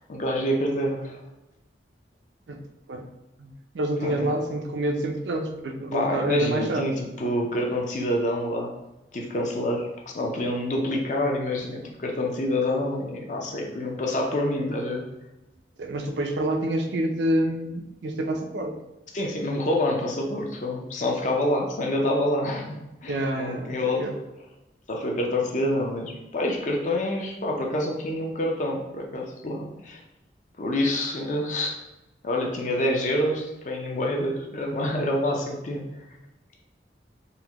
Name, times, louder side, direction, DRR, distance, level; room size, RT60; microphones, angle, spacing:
voice 1, 0.1-1.2 4.0-4.3 5.9-8.7 9.1-15.0 19.1-24.2 24.9-30.0 30.6-31.8 32.2-35.8, left 1 dB, 45° left, 1 dB, 0.5 m, -27 dB
voice 2, 3.4-6.9 15.8-18.8 23.1-24.1, right 1 dB, 75° right, 4 dB, 0.4 m, -27 dB
3.8 x 2.1 x 2.9 m, 1.0 s
head